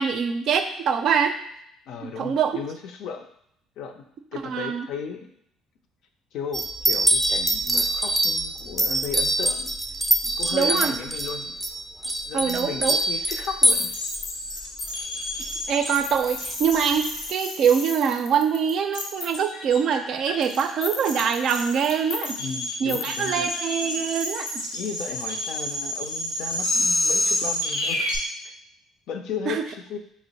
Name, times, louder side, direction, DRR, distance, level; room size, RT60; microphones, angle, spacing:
voice 1, 0.0-1.4 2.0-2.5 4.4-4.9 10.5-10.9 12.3-13.0 15.7-22.4 22.8-24.6 29.5-29.6, right 7 dB, 60° right, 7 dB, 0.4 m, -24 dB
voice 2, 1.9-3.3 3.8-4.1 4.3-5.3 6.3-9.7 10.2-11.5 12.3-13.9 22.4-23.5 24.7-28.5 29.1-30.0, left 6 dB, 70° left, 5 dB, 0.5 m, -35 dB
sound 1, 6.5-14.2 14.5-15.5 15.9-16.6 16.8-16.9 17.2-17.3, right 1 dB, 5° right, 0.5 m, -25 dB
sound 2, 13.7-28.2, left 1 dB, 85° left, 1.1 m, -29 dB
4.3 x 2.0 x 4.0 m, 0.72 s
supercardioid pair, 85°, 0 cm